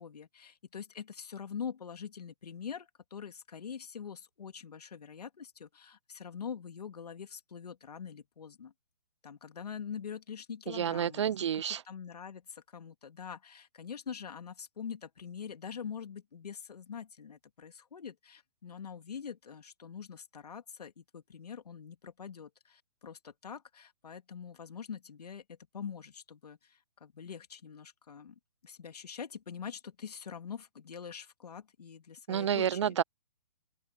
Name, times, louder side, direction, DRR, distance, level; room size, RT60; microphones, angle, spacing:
voice 1, 0.0-8.7 9.2-11.3 11.9-28.3 28.6-33.0, left 7 dB, 80° left, 2.5 m, -44 dB
voice 2, 10.7-11.8 32.3-33.0, right 9 dB, 50° right, 0.4 m, -29 dB
open air
hypercardioid pair, 165°, 20 cm